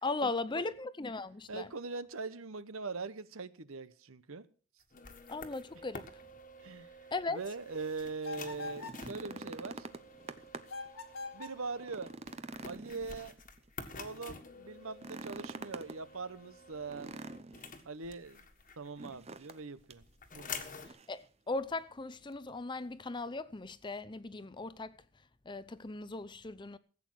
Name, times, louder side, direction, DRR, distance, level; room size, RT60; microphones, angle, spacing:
voice 1, 0.0-1.7 5.3-6.1 7.1-7.4 21.1-25.0 25.5-26.8, left 3 dB, 20° left, 0.5 m, -38 dB
voice 2, 1.5-4.5 6.6-7.0 7.3-9.9 11.3-12.1 12.6-13.4 13.9-17.2 17.8-18.5 18.8-20.0 20.3-20.5, right 4 dB, 70° right, 0.9 m, -42 dB
sound 1, 4.8-19.2 19.5-20.9, left 4 dB, 35° left, 1.6 m, -49 dB
sound 2, 8.2-9.1 10.7-11.6, left 3 dB, 65° left, 1.7 m, -43 dB
sound 3, 8.6-10.9 11.3-11.4 11.8-13.7 14.9-16.0 16.9-17.8 19.0-19.6 19.9-20.0 20.6-21.2 22.3-22.4, right 3 dB, 30° right, 0.7 m, -46 dB
15.5 x 8.6 x 6.2 m
head